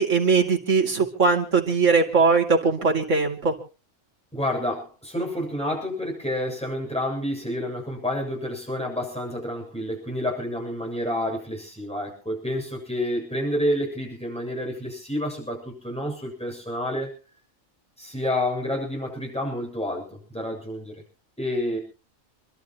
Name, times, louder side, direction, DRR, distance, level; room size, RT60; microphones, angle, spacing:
voice 1, 0.0-3.5, right 4 dB, 60° right, 1 dB, 3.2 m, -20 dB
voice 2, 4.3-17.2 18.0-20.9 21.4-21.8, left 1 dB, 5° left, 0 dB, 7.3 m, -29 dB
28.5 x 12.5 x 3.1 m, 0.34 s
omnidirectional pair, 1.4 m